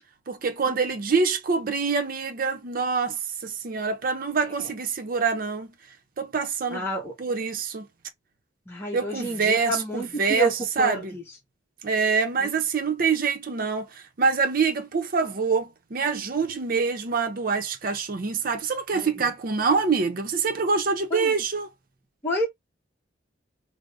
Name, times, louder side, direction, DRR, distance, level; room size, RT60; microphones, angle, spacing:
voice 1, 0.3-5.7 6.2-6.9 7.2-7.9 8.9-11.1 11.8-21.7, right 5 dB, 50° right, 0.6 m, -25 dB
voice 2, 6.7-7.1 8.7-10.5 10.8-11.2 12.4-12.5 18.9-19.3 21.1-21.3 22.2-22.5, right 1 dB, 15° left, 1.0 m, -29 dB
2.5 x 2.0 x 3.3 m
head